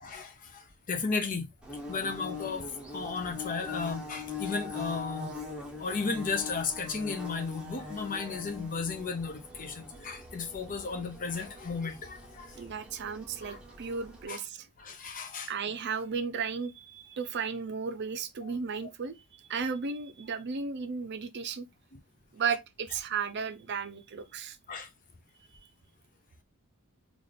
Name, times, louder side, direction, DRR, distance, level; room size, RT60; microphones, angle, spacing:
voice 1, 0.0-1.5 1.9-2.6 2.9-5.3 5.8-12.7 13.4-13.6 14.3-14.4 14.8-15.5 18.8-18.9 24.7-24.9, left 4 dB, 40° left, 0.6 m, -34 dB
Bird / Buzz, 1.6-14.2, left 4 dB, 5° right, 0.8 m, -42 dB
voice 2, 12.6-14.7 15.5-21.7 22.3-24.6, right 5 dB, 50° right, 0.5 m, -34 dB
3.9 x 2.5 x 3.2 m
head